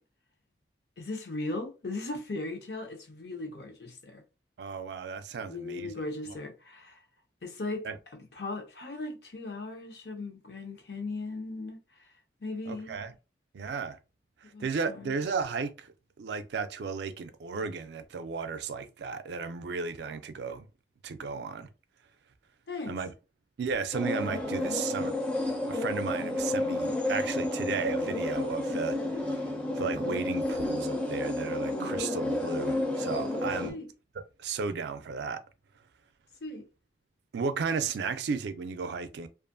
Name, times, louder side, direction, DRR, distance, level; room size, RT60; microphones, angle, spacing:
voice 1, 1.0-4.2 5.5-7.0 7.4-7.9 8.3-11.8 12.4-13.0 14.5-15.1 22.7-23.0 24.6-24.8 33.6-33.9 36.4-36.7, left 2 dB, 65° left, 0.7 m, -38 dB
voice 2, 4.6-5.9 6.3-6.4 7.8-8.0 12.7-13.1 13.5-14.0 14.6-15.9 16.2-20.7 21.0-21.7 22.9-23.1 23.6-25.1 25.7-29.3 29.8-33.8 34.4-35.4 37.3-39.3, right 5 dB, 75° right, 0.4 m, -34 dB
sound 1, 23.9-33.7, left 1 dB, 5° left, 0.4 m, -31 dB
2.6 x 2.4 x 2.5 m
head